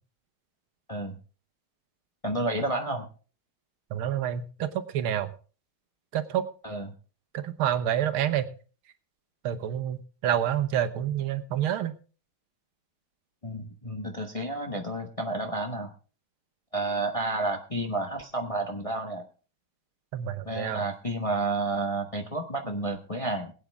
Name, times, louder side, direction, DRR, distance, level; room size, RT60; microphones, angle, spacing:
voice 1, 2.2-3.1 6.6-6.9 13.4-15.9 16.7-19.2 20.4-23.5, right 2 dB, 20° left, 3 dB, 0.9 m, -30 dB
voice 2, 3.9-5.3 6.1-6.5 7.3-8.5 9.4-11.9 20.1-20.8, right 10 dB, 80° right, 11 dB, 1.9 m, -28 dB
21.0 x 8.7 x 3.5 m, 0.37 s
omnidirectional pair, 2.3 m